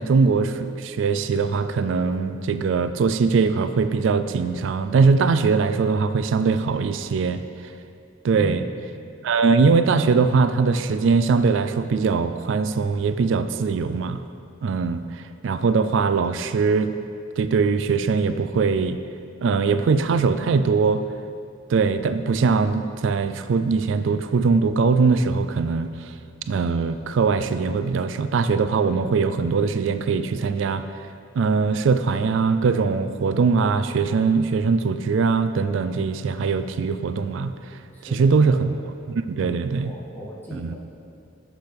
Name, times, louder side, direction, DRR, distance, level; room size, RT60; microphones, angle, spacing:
voice 1, 0.0-7.4 8.2-8.6 9.2-14.2 14.6-16.9 17.4-19.0 19.4-21.0 21.7-26.1 26.5-30.8 31.4-37.8 38.1-38.7 39.1-39.9 40.6-40.7, right 4 dB, 65° right, 11 dB, 0.3 m, -21 dB
voice 2, 8.3-8.9 37.9-38.7 39.4-40.8, equal, 10° left, -5 dB, 0.8 m, -38 dB
10.0 x 6.0 x 3.5 m, 2.4 s
head